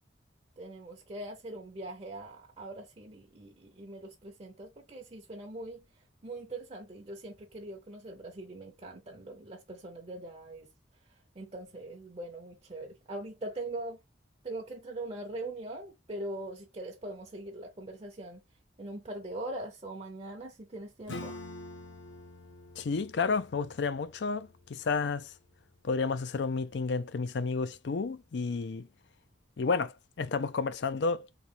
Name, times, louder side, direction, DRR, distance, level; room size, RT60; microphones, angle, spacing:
voice 1, 0.6-5.8 6.2-10.7 11.4-14.0 14.4-18.4 18.8-21.4, right 1 dB, 35° right, 0.7 m, -42 dB
Acoustic guitar / Strum, 21.1-26.3, left 2 dB, 80° left, 1.2 m, -47 dB
voice 2, 22.8-25.3 25.8-28.9 29.6-31.3, left 4 dB, 65° left, 0.4 m, -31 dB
3.1 x 3.0 x 4.4 m
head